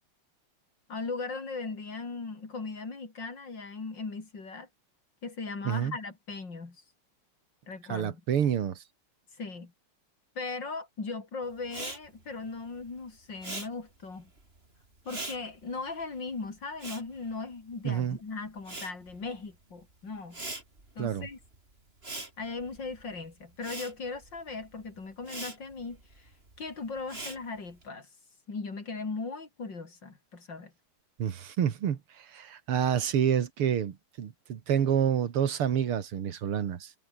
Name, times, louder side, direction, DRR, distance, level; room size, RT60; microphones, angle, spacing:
voice 1, 0.9-4.7 5.2-6.8 7.7-8.2 9.4-9.7 10.4-14.3 15.1-20.4 21.0-21.4 22.4-26.3 26.6-28.1 28.5-30.7, left 4 dB, 55° left, 4.4 m, -38 dB
voice 2, 5.6-6.0 7.9-8.8 17.8-18.2 21.0-21.3 31.2-36.9, right 8 dB, 80° right, 2.5 m, -28 dB
Respiratory sounds, 11.6-18.1 18.4-27.8, right 2 dB, 25° right, 4.5 m, -43 dB
omnidirectional pair, 2.4 m